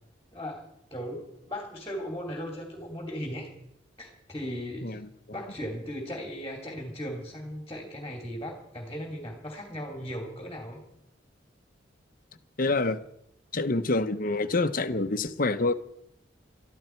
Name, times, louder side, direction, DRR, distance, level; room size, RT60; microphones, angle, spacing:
voice 1, 0.3-0.6 0.9-3.5 4.0-5.0 5.3-10.8, equal, 15° left, 1 dB, 2.9 m, -37 dB
voice 2, 12.6-13.0 13.5-15.7, left 3 dB, 45° left, 10 dB, 1.0 m, -27 dB
22.5 x 13.5 x 4.5 m, 0.77 s
head